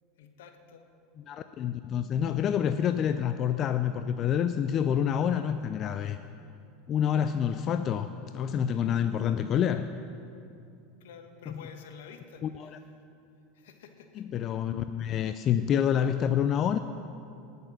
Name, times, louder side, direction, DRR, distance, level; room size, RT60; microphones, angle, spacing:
voice 1, 0.2-0.9 11.0-12.8 13.5-14.3, left 6 dB, 75° left, 6 dB, 1.2 m, -50 dB
voice 2, 1.3-6.2 6.9-9.9 11.5-11.6 12.4-12.7 14.2-16.8, left 9 dB, 40° left, 10 dB, 0.5 m, -27 dB
19.0 x 6.8 x 6.0 m, 2.6 s
hypercardioid pair, 90°, 0 cm